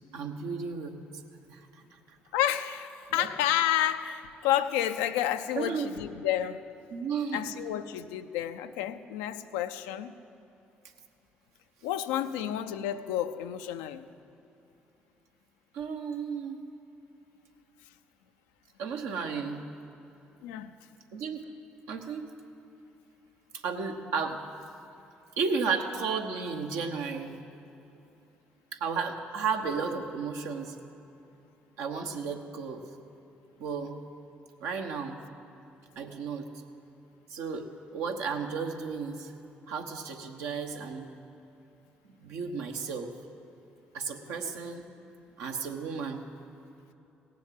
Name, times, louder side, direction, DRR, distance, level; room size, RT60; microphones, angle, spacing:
voice 1, 0.1-1.0 1.5-2.2 3.1-3.3 5.5-5.9 6.9-7.4 15.7-16.6 18.8-19.6 21.1-21.4 21.9-22.3 23.5-24.4 25.4-27.4 28.7-30.8 31.8-32.8 33.6-34.0 34.6-35.2 36.0-36.5 37.3-37.7 37.9-39.3 39.7-41.1 42.2-43.1 43.9-44.8 45.4-46.2, right 5 dB, 80° right, 3 dB, 1.0 m, -33 dB
voice 2, 2.3-6.6 7.3-10.1 11.8-14.1 20.4-20.7 44.3-44.5, left 11 dB, 90° left, 10 dB, 0.4 m, -30 dB
17.0 x 7.5 x 7.5 m, 2.9 s
hypercardioid pair, 55°, 5 cm